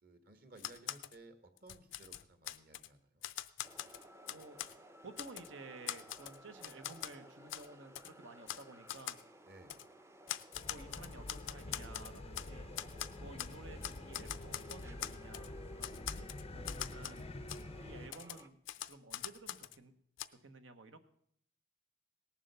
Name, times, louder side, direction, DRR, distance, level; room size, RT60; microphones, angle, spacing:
voice 1, 0.0-3.3 9.5-9.7, right 2 dB, 50° right, 9 dB, 1.5 m, -58 dB
Typewriter, 0.6-1.2 1.6-2.9 3.2-4.8 5.2-5.5 5.9-7.2 7.5-7.7 8.0-8.1 8.5-8.6 8.9-9.2 9.7-9.9 10.3-12.5 12.8-13.6 13.8-15.5 15.8-17.2 17.5-17.6 18.1-19.8 20.2-20.3, left 12 dB, 80° left, 0.5 m, -43 dB
sound 1, 3.6-18.5, right 1 dB, 15° right, 0.6 m, -58 dB
voice 2, 3.8-4.6 5.0-9.2 10.3-12.8 13.1-17.2 17.8-18.6 18.9-19.9 20.3-21.0, right 3 dB, 80° right, 9 dB, 1.2 m, -54 dB
sound 2, 10.5-18.1, left 2 dB, 30° left, 0.5 m, -47 dB
18.0 x 7.4 x 6.8 m, 0.67 s
head